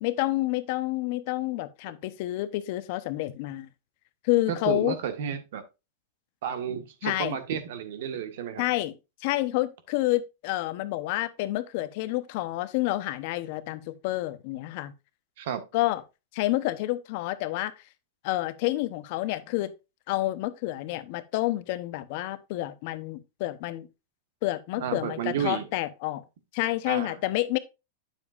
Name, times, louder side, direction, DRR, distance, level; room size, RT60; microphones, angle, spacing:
voice 1, 0.0-3.7 4.2-5.0 7.0-7.4 8.6-8.9 9.2-14.9 15.7-16.0 16.3-17.7 18.2-19.7 20.1-23.9 24.4-26.2 26.5-27.6, left 17 dB, 55° left, 0.9 m, -29 dB
voice 2, 4.5-5.6 6.4-8.6 15.4-15.6 24.8-25.7 26.9-27.2, right 8 dB, 70° right, 1.6 m, -32 dB
9.2 x 7.2 x 2.5 m
supercardioid pair, 140°, 0 cm